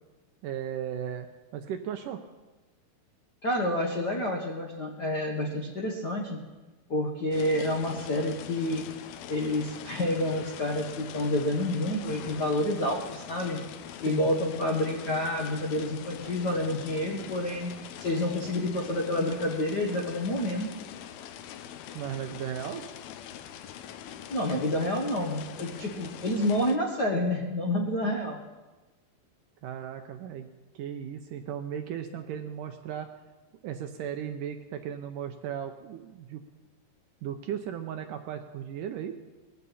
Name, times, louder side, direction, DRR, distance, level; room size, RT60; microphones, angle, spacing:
voice 1, 0.4-1.3 1.5-2.2 14.1-14.3 21.9-22.8 29.6-30.5 30.7-33.1 33.6-36.4 37.2-39.1, right 9 dB, 80° right, 6 dB, 2.0 m, -36 dB
voice 2, 3.4-6.4 6.9-8.8 9.3-13.6 14.0-17.7 18.0-20.7 24.3-28.4, left 1 dB, 65° left, 0 dB, 1.0 m, -29 dB
sound 1, 7.3-26.8, left 10 dB, 85° left, 2.6 m, -43 dB
20.0 x 15.0 x 4.2 m, 1.2 s
omnidirectional pair, 4.4 m